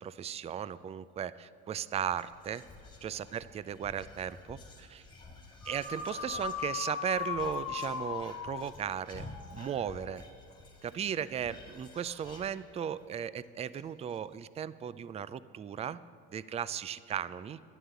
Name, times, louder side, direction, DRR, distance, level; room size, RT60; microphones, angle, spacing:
voice 1, 0.0-2.6 3.0-5.0 5.7-10.2 10.8-16.0 16.3-17.6, right 8 dB, 20° right, 17 dB, 0.3 m, -36 dB
Whispering, 2.1-13.1 13.4-13.5 13.8-14.2, left 2 dB, 15° left, 2.4 m, -52 dB
sound 1, 5.6-10.1, left 7 dB, 55° left, 1.3 m, -39 dB
11.5 x 11.0 x 8.2 m, 2.3 s
cardioid pair, 115°, 32 cm